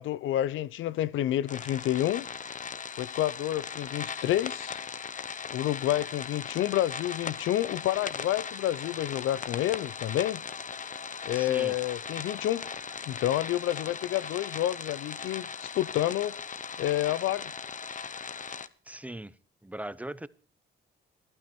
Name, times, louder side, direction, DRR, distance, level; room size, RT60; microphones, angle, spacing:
voice 1, 0.0-2.3 3.0-4.8 5.5-10.4 11.2-12.7 13.1-16.4 16.8-17.5, left 13 dB, 80° left, 0.6 m, -29 dB
sound 1, 1.5-18.7, left 6 dB, 40° left, 1.0 m, -38 dB
voice 2, 11.3-11.8 18.9-19.3 19.6-20.3, right 1 dB, 5° right, 0.7 m, -39 dB
17.5 x 12.5 x 4.5 m
cardioid pair, 90°, 20 cm